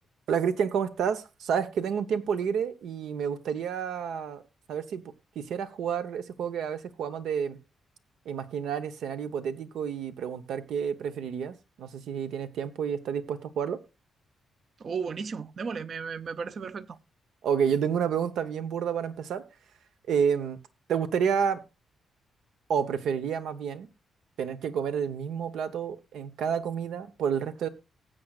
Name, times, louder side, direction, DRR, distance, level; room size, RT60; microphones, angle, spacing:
voice 1, 0.3-4.4 4.7-5.0 5.3-7.6 8.3-13.8 17.4-19.4 20.1-20.6 20.9-21.6 22.7-23.9 24.4-27.7, right 7 dB, 85° right, 0.9 m, -29 dB
voice 2, 14.8-17.0, right 5 dB, 40° right, 0.5 m, -34 dB
19.0 x 7.7 x 2.4 m
wide cardioid pair, 165°, 0 cm